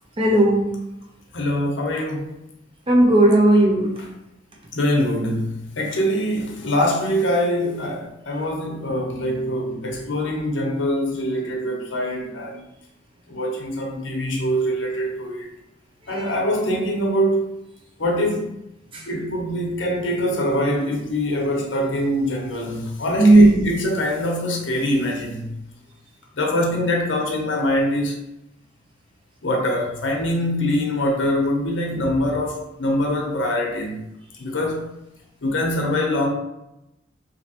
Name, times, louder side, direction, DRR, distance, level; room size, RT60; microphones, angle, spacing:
voice 1, 0.2-0.6 2.9-3.9 16.1-16.3 18.9-19.0 23.2-23.7, right 1 dB, 30° right, 0 dB, 0.6 m, -15 dB
voice 2, 1.3-2.4 4.7-12.6 13.3-15.5 16.1-17.5 18.0-18.5 19.1-25.5 26.3-28.1 29.4-33.9 34.4-34.9 35.4-36.3, equal, 65° left, 0 dB, 0.8 m, -23 dB
3.1 x 2.7 x 2.8 m, 0.88 s
head